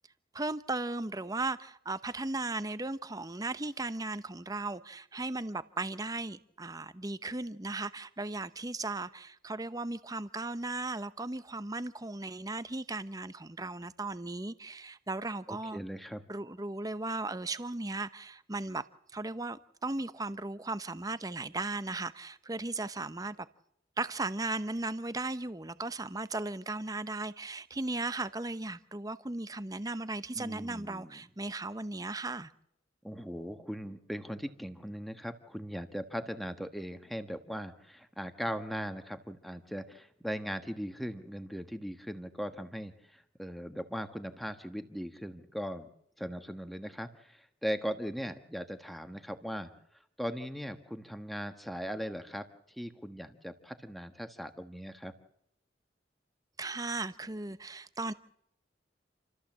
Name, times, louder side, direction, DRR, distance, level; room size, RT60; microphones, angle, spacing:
voice 1, 0.3-15.9 16.3-18.8 19.1-23.5 24.0-32.5 56.6-58.1, right 2 dB, 20° right, 0.8 m, -36 dB
voice 2, 15.5-16.2 30.3-31.2 33.0-45.9 46.2-49.7 50.2-55.1, equal, ahead, 1.5 m, -39 dB
28.5 x 14.0 x 7.5 m
head